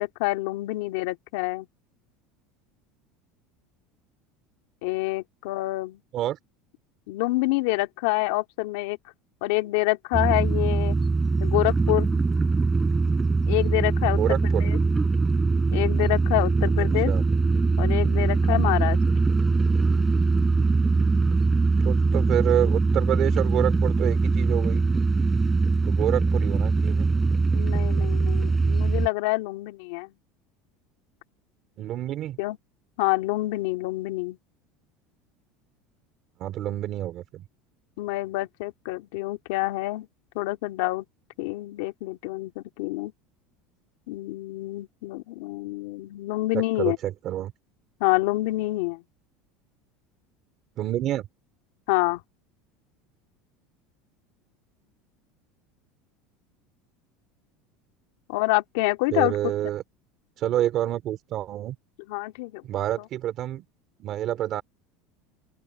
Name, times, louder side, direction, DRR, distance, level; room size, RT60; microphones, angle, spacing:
voice 1, 0.0-1.7 4.8-6.0 7.1-9.0 9.4-11.0 11.4-12.2 13.5-14.8 15.7-17.1 17.8-19.0 27.5-30.1 32.4-32.6 33.0-34.4 38.0-40.1 40.3-41.1 41.4-43.1 44.1-47.0 48.0-49.0 51.9-52.2 58.3-59.5 62.1-62.6, left 21 dB, 65° left, 2.5 m, -27 dB
sound 1, 10.1-29.1, right 3 dB, 10° right, 4.4 m, -22 dB
voice 2, 14.0-14.7 16.8-17.3 21.8-24.8 25.8-27.1 31.8-32.4 36.4-37.4 46.8-47.5 50.8-51.2 59.1-59.8 60.4-61.8 62.6-63.6 64.0-64.6, right 12 dB, 35° right, 2.7 m, -28 dB
open air
cardioid pair, 180°, 0 cm